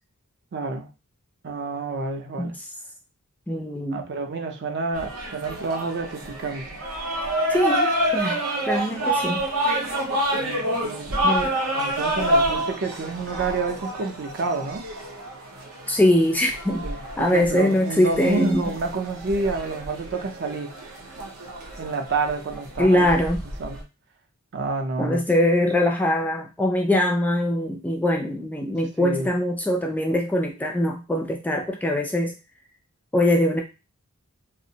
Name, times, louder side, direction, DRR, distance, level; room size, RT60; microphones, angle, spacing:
voice 1, 0.5-0.9 1.4-2.6 3.9-6.8 10.3-11.3 11.8-14.9 16.8-20.7 21.8-23.1 23.6-23.8 24.5-25.2 29.0-29.3, right 3 dB, 55° right, 5 dB, 0.5 m, -29 dB
voice 2, 3.5-4.0 7.5-9.4 11.2-11.5 15.9-16.8 17.2-18.6 22.8-23.4 25.0-32.3 33.1-33.6, left 1 dB, 5° left, 1 dB, 0.3 m, -22 dB
sound 1, 4.9-23.8, right 1 dB, 90° right, 0.7 m, -28 dB
2.4 x 2.0 x 2.7 m, 0.28 s
head